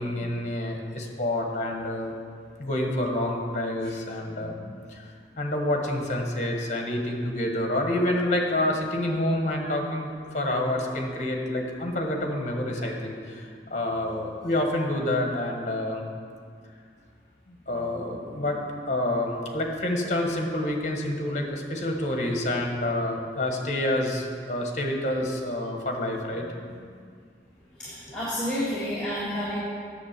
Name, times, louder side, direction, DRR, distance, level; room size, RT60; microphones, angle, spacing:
voice 1, 0.0-2.1 2.6-5.1 5.4-16.0 17.5-18.6 18.9-26.9, left 1 dB, 40° left, 2 dB, 1.3 m, -28 dB
voice 2, 27.8-29.6, equal, 5° left, -10 dB, 1.8 m, -30 dB
8.6 x 7.2 x 6.7 m, 2.2 s
head